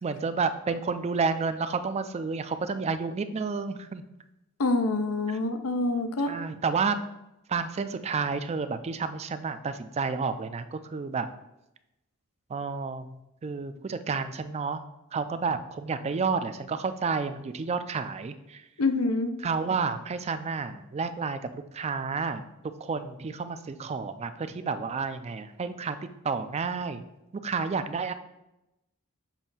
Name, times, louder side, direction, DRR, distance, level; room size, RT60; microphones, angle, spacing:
voice 1, 0.0-4.0 6.3-7.0 7.5-11.3 12.5-13.1 13.4-14.8 15.1-18.6 19.4-22.4 22.8-26.0 26.2-27.0 27.4-28.1, right 5 dB, 30° right, 10 dB, 0.3 m, -30 dB
voice 2, 4.6-6.3 18.8-19.3, left 2 dB, 85° left, 8 dB, 0.6 m, -26 dB
7.3 x 2.6 x 5.5 m, 0.89 s
head